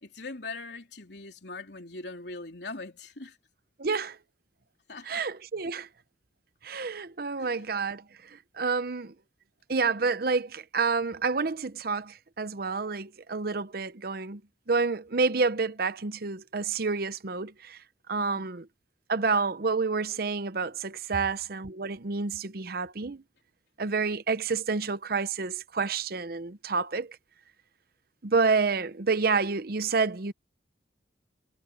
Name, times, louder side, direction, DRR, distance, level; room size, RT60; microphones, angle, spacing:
voice 1, 0.0-3.4 4.9-5.2 7.4-7.6 18.3-18.5, left 3 dB, 65° left, 3.4 m, -41 dB
voice 2, 3.8-4.2 5.0-5.9 6.6-8.0 8.6-9.1 9.7-14.4 14.7-17.8 18.1-18.7 19.1-23.2 23.8-27.2 28.2-30.3, right 4 dB, 55° right, 0.8 m, -29 dB
head